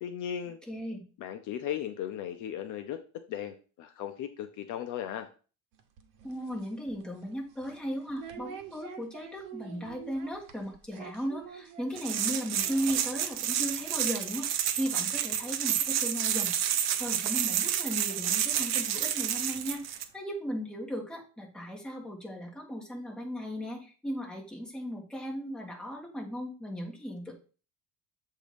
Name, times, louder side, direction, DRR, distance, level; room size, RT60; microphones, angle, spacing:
voice 1, 0.0-0.6 1.2-3.0 3.3-5.3, left 10 dB, 55° left, 7 dB, 0.7 m, -36 dB
voice 2, 0.7-1.0 6.2-19.8 20.1-27.3, equal, 5° left, -2 dB, 1.6 m, -36 dB
sound 1, 5.7-13.7 13.9-14.2 14.5-14.7 15.4-15.5 16.0-16.1 16.5-16.6 18.0-18.1 18.8-20.2, right 8 dB, 65° right, 1.1 m, -48 dB
sound 2, 12.0-20.0, right 10 dB, 50° right, 0.6 m, -30 dB
7.4 x 2.8 x 5.1 m, 0.37 s
cardioid pair, 140°, 35 cm